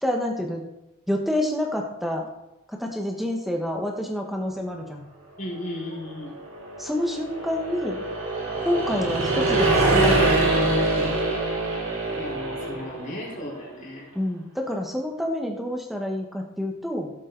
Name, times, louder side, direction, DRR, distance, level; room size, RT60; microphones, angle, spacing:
voice 1, 0.0-0.6 1.1-2.3 2.7-5.0 6.8-8.0 8.6-11.1 14.1-17.1, left 1 dB, ahead, 1 dB, 1.3 m, -28 dB
voice 2, 5.4-6.4 12.1-14.1, left 1 dB, 35° left, -6 dB, 4.4 m, -35 dB
sound 1, 6.2-13.2, right 2 dB, 80° right, 5.0 m, -24 dB
16.5 x 7.5 x 4.0 m, 0.93 s
head